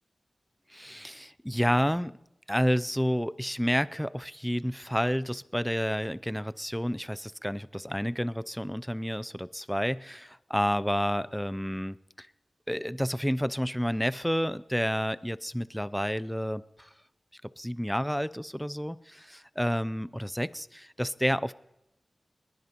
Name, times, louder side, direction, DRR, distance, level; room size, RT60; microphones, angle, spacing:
voice 1, 0.7-2.1 2.5-12.3 12.7-16.9 17.4-21.5, equal, ahead, 16 dB, 0.4 m, -30 dB
20.5 x 20.5 x 2.9 m, 0.90 s
wide cardioid pair, 65°, 0 cm